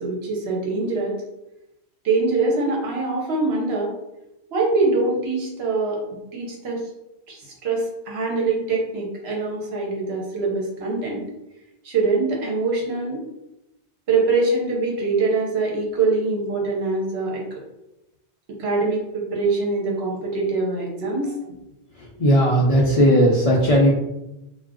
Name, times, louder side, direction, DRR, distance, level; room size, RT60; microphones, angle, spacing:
voice 1, 0.0-1.2 2.0-3.9 4.5-6.8 7.3-11.3 11.8-13.2 14.1-17.4 18.6-21.3, right 3 dB, 70° right, -2 dB, 1.0 m, -23 dB
voice 2, 22.2-23.9, equal, 50° left, -4 dB, 0.4 m, -16 dB
2.3 x 2.1 x 3.5 m, 0.90 s
omnidirectional pair, 1.1 m